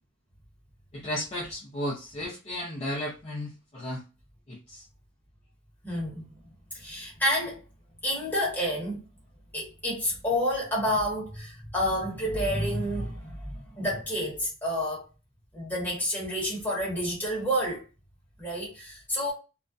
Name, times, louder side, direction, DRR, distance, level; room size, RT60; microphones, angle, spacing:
voice 1, 0.9-4.0 4.5-4.8, left 1 dB, 30° left, 0.5 m, -34 dB
voice 2, 5.8-6.3 6.7-7.6 8.0-9.0 9.5-15.1 15.5-17.9 18.4-19.3, equal, 10° left, 1.0 m, -29 dB
2.3 x 2.1 x 2.5 m
head